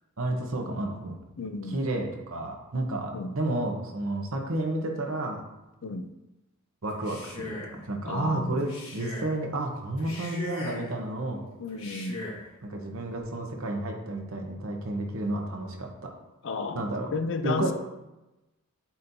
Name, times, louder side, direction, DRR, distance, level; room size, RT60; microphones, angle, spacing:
voice 1, 0.2-1.2 1.7-5.4 6.8-11.5 12.6-16.1 16.7-17.1 17.4-17.7, right 2 dB, 70° right, 2 dB, 0.9 m, -31 dB
voice 2, 1.4-1.8 3.1-3.3 5.8-6.1 8.1-8.7 11.6-12.2 16.4-17.7, left 3 dB, 55° left, 8 dB, 0.4 m, -33 dB
Male speech man speaking, 6.9-7.8 8.6-9.4 10.0-10.9 11.7-12.5, left 1 dB, 70° left, 1.9 m, -39 dB
8.4 x 4.3 x 2.7 m, 1.0 s
head